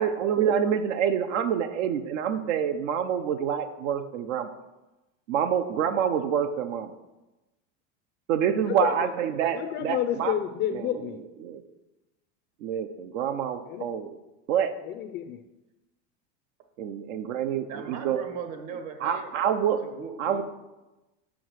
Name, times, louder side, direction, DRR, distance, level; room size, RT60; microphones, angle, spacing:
voice 1, 0.0-4.5 5.3-6.9 8.3-10.3 11.4-11.6 12.6-14.2 14.5-14.7 16.8-18.2 19.0-19.8 20.2-20.4, right 8 dB, 75° right, 9 dB, 0.8 m, -27 dB
voice 2, 8.6-9.1 9.5-11.2 13.7-14.0 14.8-15.4, left 10 dB, 30° left, 7 dB, 0.4 m, -30 dB
voice 3, 17.7-19.3 19.8-20.4, right 5 dB, 55° right, 6 dB, 1.4 m, -38 dB
6.3 x 5.9 x 6.3 m, 1.1 s
supercardioid pair, 135°, 37 cm